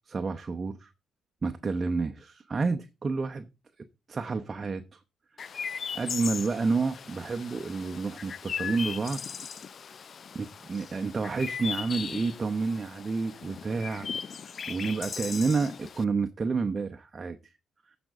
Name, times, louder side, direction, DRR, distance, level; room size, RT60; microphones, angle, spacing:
voice 1, 0.1-0.9 1.4-3.5 4.1-5.0 5.9-9.2 10.3-14.1 14.7-17.4, right 4 dB, 30° right, 0.8 m, -30 dB
Chirp tweet, 5.4-16.0, left 6 dB, 50° left, 0.4 m, -38 dB
14.5 x 5.2 x 3.5 m
cardioid pair, 90°, 0 cm